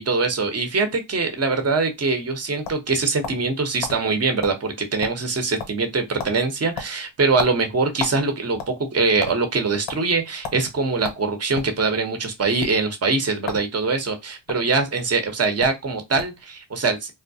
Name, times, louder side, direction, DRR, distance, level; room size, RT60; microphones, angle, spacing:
voice 1, 0.0-17.1, right 4 dB, 30° right, 0.8 m, -23 dB
sound 1, 2.6-3.5 3.8-4.0 4.4-4.6 4.9-5.3 5.6-5.9 6.2-6.4 6.7-8.2 8.5-9.3 9.9-10.0 10.4-10.6 11.0-11.7 12.5-12.7 13.4-13.7 14.0-14.5 15.3-15.4 15.6-15.8 16.2-16.4, left 5 dB, 75° left, 0.8 m, -32 dB
2.3 x 2.1 x 2.6 m
supercardioid pair, 45°, 47 cm